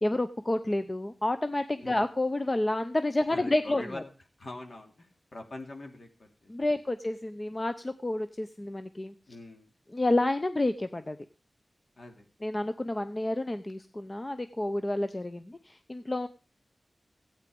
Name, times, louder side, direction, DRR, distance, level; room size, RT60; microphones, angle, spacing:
voice 1, 0.0-4.0 6.5-9.1 9.9-11.2 12.4-16.3, left 1 dB, 25° left, 10 dB, 0.7 m, -29 dB
voice 2, 3.2-4.1 4.4-6.5 9.3-9.7 12.0-12.3, left 2 dB, 55° left, 3 dB, 3.0 m, -44 dB
15.0 x 9.0 x 5.2 m, 0.34 s
wide cardioid pair, 105°, 0 cm